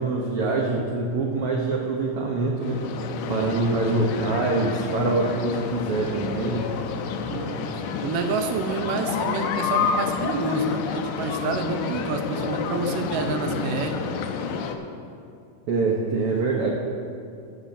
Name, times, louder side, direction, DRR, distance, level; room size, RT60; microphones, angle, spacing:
voice 1, 0.0-3.0 3.3-6.7 15.7-16.7, right 3 dB, 65° right, -1 dB, 1.5 m, -25 dB
sound 1, 2.6-14.7, left 6 dB, 80° left, 2.2 m, -29 dB
voice 2, 7.3-14.0, right 4 dB, 85° right, 5 dB, 2.6 m, -28 dB
15.0 x 14.5 x 2.7 m, 2.4 s
omnidirectional pair, 3.7 m